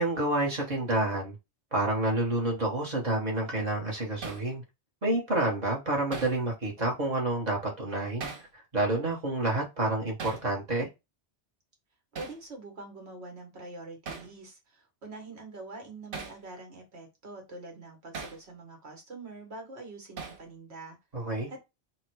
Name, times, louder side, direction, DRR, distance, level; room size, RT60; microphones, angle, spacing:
voice 1, 0.0-1.4 1.7-4.6 5.0-10.9 21.1-21.5, right 2 dB, 40° right, 1.2 m, -29 dB
Hammer, 4.2-4.5 6.1-6.4 8.2-8.5 10.2-10.5 12.1-12.4 14.1-14.3 16.1-16.4 18.1-18.4 20.2-20.5, right 5 dB, 55° right, 0.9 m, -39 dB
voice 2, 12.1-21.0 21.5-21.6, right 2 dB, 70° right, 1.5 m, -44 dB
3.8 x 2.2 x 4.5 m
omnidirectional pair, 1.1 m